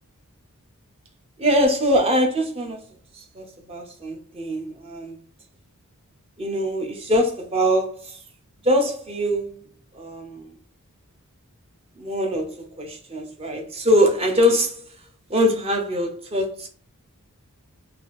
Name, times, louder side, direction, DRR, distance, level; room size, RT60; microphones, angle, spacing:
voice 1, 1.4-2.8 3.1-5.2 6.4-8.2 8.6-9.6 9.9-10.5 12.0-14.9 15.3-16.7, equal, 25° right, 0.6 m, -23 dB
2.8 x 2.5 x 3.1 m
head